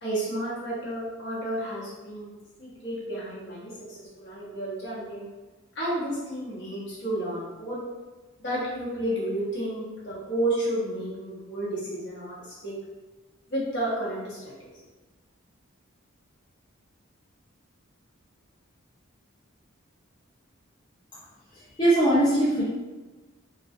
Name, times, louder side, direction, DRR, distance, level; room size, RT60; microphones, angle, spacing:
voice 1, 0.0-2.3 2.6-5.3 5.7-7.8 8.4-12.7 13.5-14.7, right 1 dB, 55° left, -8 dB, 0.9 m, -31 dB
voice 2, 21.8-22.6, right 1 dB, 20° left, -9 dB, 0.4 m, -20 dB
2.3 x 2.2 x 2.5 m, 1.2 s
head